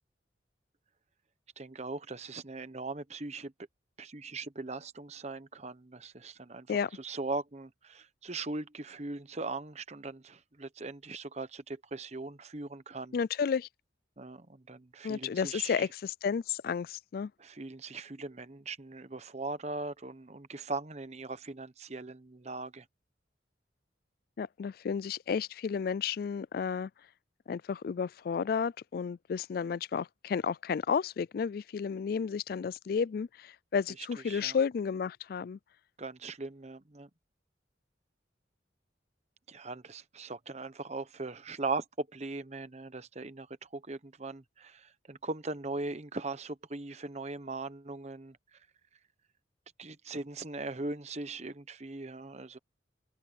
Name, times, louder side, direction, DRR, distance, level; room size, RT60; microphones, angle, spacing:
voice 1, 1.6-3.5 4.0-13.2 14.2-15.9 17.4-22.9 34.0-34.6 36.0-37.1 39.5-48.6 49.8-52.6, right 3 dB, 35° right, 1.0 m, -40 dB
voice 2, 13.1-13.7 15.0-17.3 24.4-26.9 27.5-35.6, left 6 dB, 55° left, 0.3 m, -32 dB
head